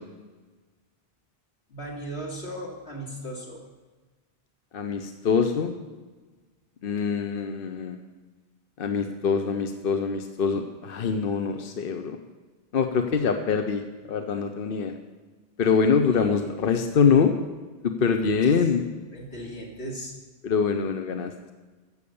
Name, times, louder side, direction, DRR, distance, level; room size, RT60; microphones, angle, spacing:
voice 1, 1.7-3.6 16.0-16.7 18.1-18.5 19.1-20.1, right 1 dB, 85° left, -2 dB, 2.9 m, -37 dB
voice 2, 4.7-5.7 6.8-8.0 8.8-12.2 12.7-13.8 14.1-14.9 15.6-17.3 17.8-18.8 20.4-21.5, left 6 dB, 60° left, 6 dB, 0.9 m, -24 dB
15.5 x 6.5 x 7.0 m, 1.3 s
omnidirectional pair, 1.1 m